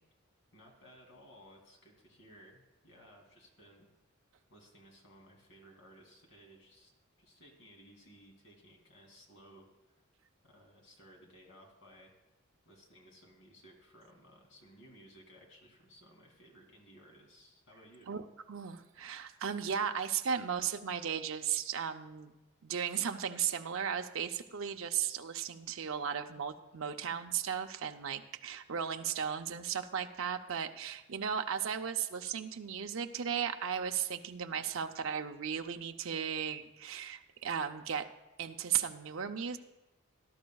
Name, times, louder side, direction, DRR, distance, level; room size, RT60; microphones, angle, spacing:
voice 1, 0.5-3.9 4.5-6.9 7.2-9.9 10.4-12.1 12.7-18.1, equal, 60° left, 0 dB, 2.7 m, -58 dB
voice 2, 18.1-38.1 38.4-39.6, right 8 dB, 70° right, 6 dB, 0.6 m, -36 dB
18.5 x 11.5 x 2.3 m, 1.0 s
head